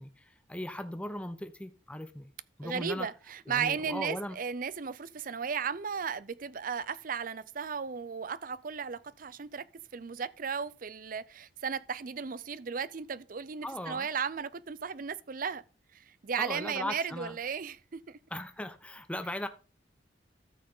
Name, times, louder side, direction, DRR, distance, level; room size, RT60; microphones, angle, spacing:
voice 1, 0.0-2.3 2.6-3.1 3.5-4.4 13.6-14.1 16.4-17.4 18.3-19.5, left 1 dB, 5° left, 0.7 m, -38 dB
voice 2, 2.6-9.7 9.9-15.6 15.9-18.2, right 6 dB, 50° right, 0.5 m, -35 dB
14.0 x 6.3 x 3.7 m
head